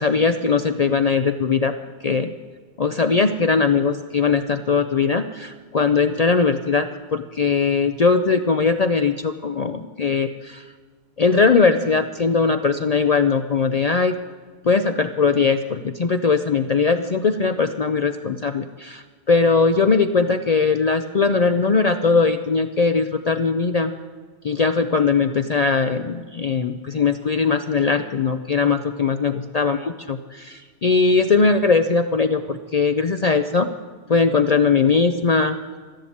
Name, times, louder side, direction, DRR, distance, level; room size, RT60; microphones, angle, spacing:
voice 1, 0.0-1.7 2.0-2.3 2.8-10.6 11.2-14.2 14.6-23.9 24.4-33.7 34.1-35.6, left 4 dB, 75° left, 8 dB, 0.3 m, -20 dB
13.0 x 11.5 x 8.5 m, 1.4 s
omnidirectional pair, 1.4 m